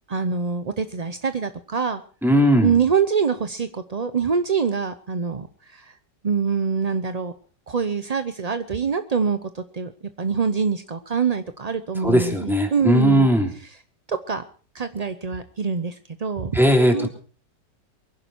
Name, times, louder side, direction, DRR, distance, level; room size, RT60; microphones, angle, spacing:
voice 1, 0.1-2.0 2.6-5.9 6.2-7.3 7.7-9.9 10.2-13.3 14.1-14.4 14.7-16.6 16.9-17.1, right 6 dB, 50° right, 10 dB, 0.4 m, -25 dB
voice 2, 2.2-2.8 12.0-13.5 16.5-17.1, equal, ahead, 2 dB, 3.1 m, -18 dB
23.5 x 11.0 x 4.6 m, 0.40 s
omnidirectional pair, 1.9 m